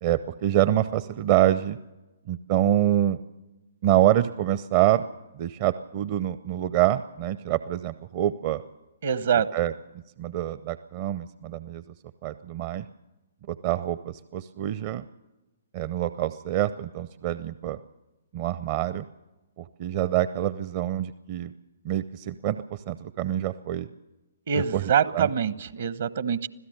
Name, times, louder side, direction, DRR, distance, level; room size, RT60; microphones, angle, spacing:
voice 1, 0.0-1.8 2.3-3.2 3.8-5.1 5.3-8.6 9.5-9.7 10.2-11.8 12.2-12.8 13.5-15.0 15.7-17.8 18.3-19.1 19.6-21.5 21.8-23.9 24.5-25.3, right 13 dB, 40° right, 15 dB, 0.6 m, -26 dB
voice 2, 9.0-9.5 24.5-26.5, right 7 dB, 60° right, 16 dB, 1.0 m, -24 dB
26.0 x 16.0 x 6.6 m, 1.1 s
figure-of-eight pair, 125°, 0 cm